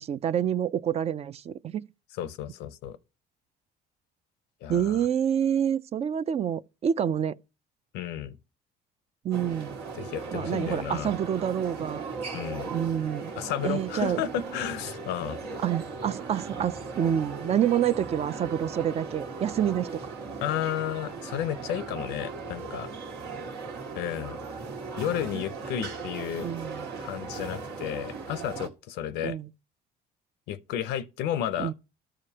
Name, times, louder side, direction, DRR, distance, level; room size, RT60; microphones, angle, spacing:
voice 1, 0.0-1.8 4.7-7.4 9.2-9.8 10.3-12.0 12.7-13.3 13.6-14.2 15.6-19.9 25.3-25.4 26.4-26.9 29.2-29.5 31.6-31.7, right 9 dB, 40° right, 0.3 m, -27 dB
voice 2, 2.2-2.9 4.6-5.0 7.9-8.4 10.0-11.1 12.3-12.7 13.4-15.4 20.4-22.9 23.9-24.4 25.0-26.5 27.0-29.4 30.5-31.7, left 10 dB, 90° left, 0.6 m, -32 dB
sound 1, 9.3-28.7, right 4 dB, 85° right, 1.7 m, -38 dB
13.0 x 5.0 x 2.8 m
cardioid pair, 110°, 17 cm